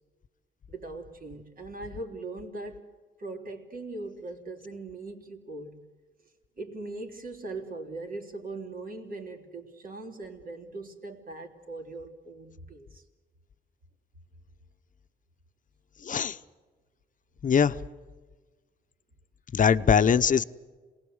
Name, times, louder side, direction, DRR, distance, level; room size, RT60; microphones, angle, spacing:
voice 1, 0.7-2.9 3.2-5.9 6.6-13.0, right 2 dB, 45° right, 4 dB, 3.7 m, -40 dB
voice 2, 17.4-17.8 19.5-20.4, left 7 dB, 40° left, 12 dB, 0.9 m, -21 dB
27.5 x 20.0 x 8.0 m, 1.4 s
cardioid pair, 90°, 20 cm